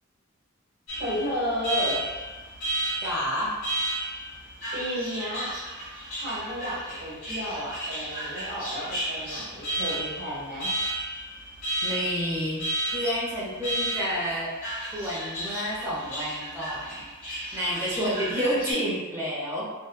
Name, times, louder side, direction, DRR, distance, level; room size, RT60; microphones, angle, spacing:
Alarm, 0.9-18.7, right 1 dB, 70° left, 1.2 m, -33 dB
voice 1, 1.0-2.0 4.7-5.6 6.2-10.7, equal, 45° right, -8 dB, 1.2 m, -32 dB
voice 2, 3.0-3.6 11.8-12.6 12.9-14.5 14.9-19.7, equal, 15° right, -7 dB, 0.7 m, -29 dB
2.7 x 2.3 x 2.2 m, 1.3 s
head